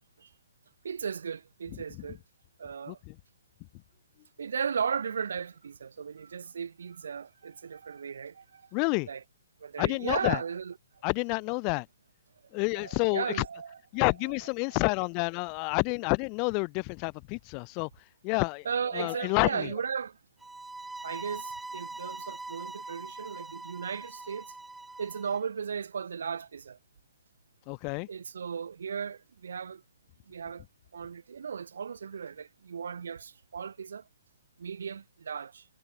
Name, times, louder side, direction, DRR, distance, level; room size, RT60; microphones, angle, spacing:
voice 1, 0.8-2.2 2.6-3.0 4.4-8.7 9.0-9.2 9.6-10.7 12.5-14.0 14.7-14.8 18.7-20.2 21.0-24.5 25.0-26.8 28.1-29.8 30.3-30.6 30.9-34.1 34.6-35.7, right 6 dB, 75° right, 5.3 m, -36 dB
voice 2, 8.7-9.1 9.8-10.4 11.0-11.9 12.5-13.2 13.9-17.9 18.2-18.6 18.9-19.7 27.7-28.1, left 36 dB, 30° left, 1.0 m, -29 dB
sound 1, 20.4-25.4, right 2 dB, 5° right, 1.9 m, -42 dB
hypercardioid pair, 140°, 0 cm